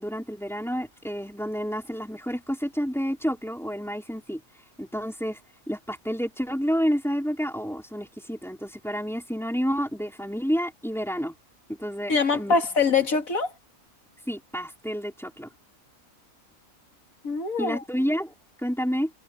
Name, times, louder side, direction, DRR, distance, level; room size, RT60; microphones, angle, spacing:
voice 1, 0.0-4.4 4.8-5.4 5.7-11.3 11.7-12.6 14.3-15.5 17.6-19.1, equal, ahead, 4.9 m, -29 dB
voice 2, 12.1-13.5 17.2-17.8, left 4 dB, 70° left, 2.7 m, -23 dB
omnidirectional pair, 1.5 m